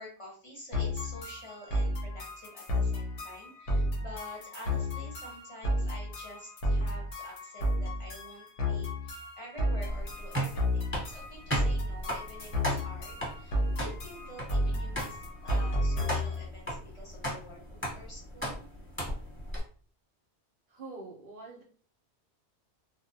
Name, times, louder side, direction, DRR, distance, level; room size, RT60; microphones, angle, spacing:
voice 1, 0.0-18.7, left 1 dB, 30° left, -4 dB, 0.7 m, -48 dB
sound 1, 0.7-16.5, left 1 dB, 80° left, 1.0 m, -32 dB
sound 2, 9.9-19.6, right 1 dB, 10° left, 1.0 m, -37 dB
voice 2, 20.7-21.6, right 3 dB, 60° right, -1 dB, 0.7 m, -45 dB
2.4 x 2.1 x 2.5 m, 0.43 s
omnidirectional pair, 1.2 m